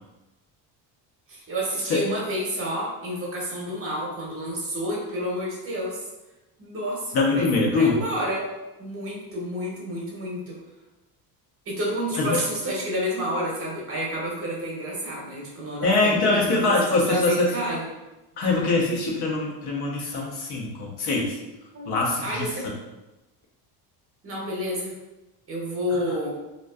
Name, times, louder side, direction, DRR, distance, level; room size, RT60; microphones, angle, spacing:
voice 1, 1.3-6.1 6.6-8.4 8.8-10.6 11.7-16.6 17.1-17.9 21.7-21.9 22.2-22.6 24.2-24.9 25.5-26.3, equal, 30° right, -3 dB, 0.7 m, -29 dB
voice 2, 7.1-8.0 12.2-12.4 15.8-17.5 18.4-21.4 21.9-22.5 25.9-26.2, left 3 dB, 65° left, -3 dB, 0.8 m, -23 dB
2.5 x 2.3 x 2.3 m, 1.0 s
cardioid pair, 125°, 42 cm